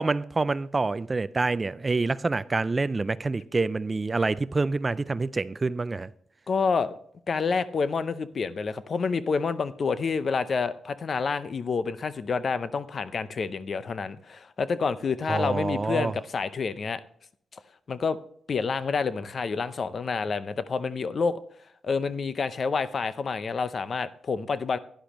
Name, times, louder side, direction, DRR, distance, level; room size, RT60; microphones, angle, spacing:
voice 1, 0.0-6.1 15.3-16.1, right 3 dB, 25° right, 0.3 m, -27 dB
voice 2, 6.5-6.9 7.3-17.0 17.9-18.2 18.5-21.4 21.8-24.8, left 5 dB, 50° left, 0.6 m, -28 dB
11.0 x 10.5 x 3.0 m
cardioid pair, 95°, 0 cm